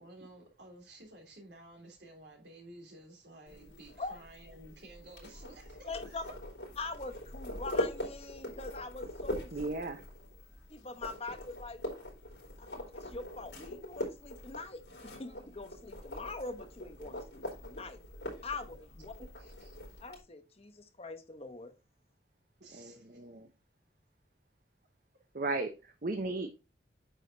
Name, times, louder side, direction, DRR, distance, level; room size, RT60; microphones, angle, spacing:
voice 1, 0.0-6.3 19.2-19.8 22.6-23.2, right 1 dB, 70° right, 2 dB, 3.3 m, -53 dB
sound 1, 3.5-20.2, left 1 dB, 80° left, 3.9 m, -42 dB
voice 2, 5.9-6.2 6.8-9.5 10.7-11.8 12.6-18.0 18.4-19.1 20.0-21.7, left 3 dB, 35° left, 8 dB, 1.0 m, -43 dB
voice 3, 9.5-10.0 22.7-23.5 25.3-26.5, right 2 dB, 50° right, 7 dB, 0.8 m, -36 dB
8.9 x 6.4 x 2.7 m, 0.29 s
head